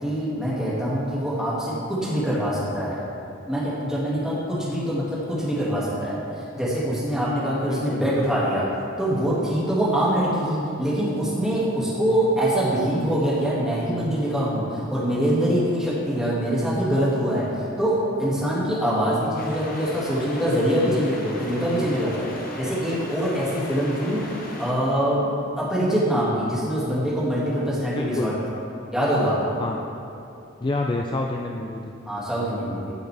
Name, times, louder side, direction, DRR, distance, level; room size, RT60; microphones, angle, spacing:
voice 1, 0.0-3.0 3.4-8.7 9.0-24.2 24.5-28.4 28.9-29.6 32.1-32.9, equal, 5° right, -9 dB, 2.0 m, -24 dB
voice 2, 7.6-8.0 12.1-12.3 28.0-28.3 29.6-29.9 30.6-31.9, left 2 dB, 25° left, 1 dB, 0.3 m, -28 dB
sound 1, 19.4-24.7, left 1 dB, 45° left, 1.2 m, -37 dB
13.0 x 6.6 x 3.4 m, 2.7 s
head